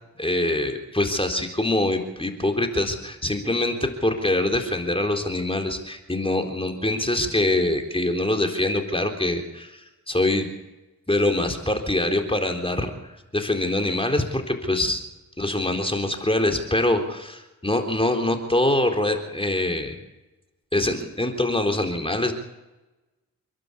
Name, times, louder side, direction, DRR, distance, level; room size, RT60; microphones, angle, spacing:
voice 1, 0.2-9.8 10.1-10.5 11.1-15.0 15.4-20.0 20.7-22.3, left 1 dB, 15° left, 4 dB, 4.0 m, -24 dB
27.5 x 12.0 x 8.6 m, 1.0 s
cardioid pair, 45°, 35 cm